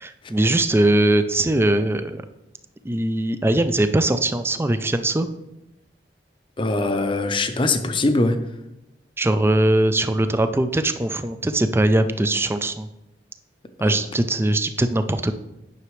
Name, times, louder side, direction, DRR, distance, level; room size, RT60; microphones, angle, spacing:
voice 1, 0.0-2.2 2.8-5.3 9.2-12.9 13.8-15.3, right 1 dB, 15° right, 10 dB, 0.4 m, -21 dB
voice 2, 6.6-8.4 13.8-14.0, left 2 dB, 30° left, 9 dB, 0.6 m, -22 dB
9.7 x 6.0 x 3.2 m, 0.94 s
head